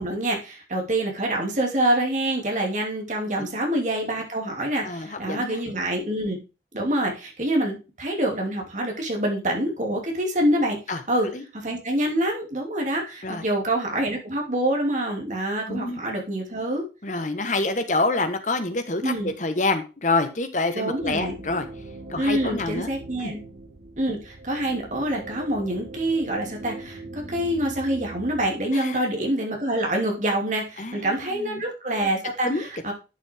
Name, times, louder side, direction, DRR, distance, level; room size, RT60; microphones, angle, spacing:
voice 1, 0.0-6.4 6.7-10.8 11.1-11.3 11.5-16.8 19.0-19.3 20.7-21.4 22.2-23.4 24.0-32.9, right 1 dB, 40° right, 1 dB, 2.9 m, -26 dB
voice 2, 4.8-5.6 10.9-11.4 13.2-13.4 15.7-16.0 17.0-21.7 22.1-22.9 23.2-23.3 28.7-29.0 30.8-31.6 32.4-32.9, left 2 dB, 45° left, 8 dB, 1.4 m, -27 dB
sound 1, 21.0-28.5, right 2 dB, 65° right, 3.0 m, -40 dB
10.5 x 6.4 x 3.7 m, 0.29 s
head